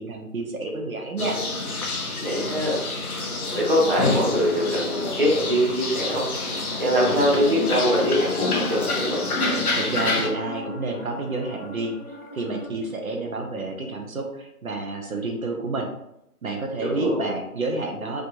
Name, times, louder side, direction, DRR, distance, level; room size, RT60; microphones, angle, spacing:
voice 1, 0.0-1.4 9.7-15.9 16.4-18.2, right 2 dB, 65° right, 2 dB, 0.8 m, -29 dB
sound 1, 1.2-10.3, left 3 dB, 70° left, 0.8 m, -28 dB
voice 2, 2.2-2.8 3.5-6.3 6.8-9.3 16.8-17.3, equal, 35° right, -4 dB, 0.6 m, -23 dB
sound 2, 6.3-12.7, left 2 dB, 20° left, 1.2 m, -38 dB
3.5 x 2.8 x 2.5 m, 0.79 s
figure-of-eight pair, 160°, 45 cm